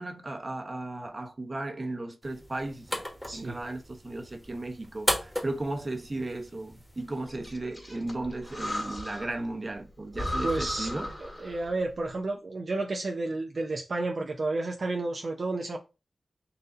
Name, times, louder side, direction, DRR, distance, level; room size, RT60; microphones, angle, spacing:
voice 1, 0.0-2.9 3.3-11.1, right 2 dB, 40° right, 0.9 m, -35 dB
sound 1, 2.2-7.2, equal, 5° left, 1.4 m, -36 dB
voice 2, 3.3-3.6 10.4-15.8, right 2 dB, 65° right, 0.5 m, -31 dB
Breathing, 7.3-9.5 9.8-9.9 10.1-11.8, left 1 dB, 25° left, 1.8 m, -36 dB
4.2 x 2.6 x 3.8 m
cardioid pair, 50°, 0 cm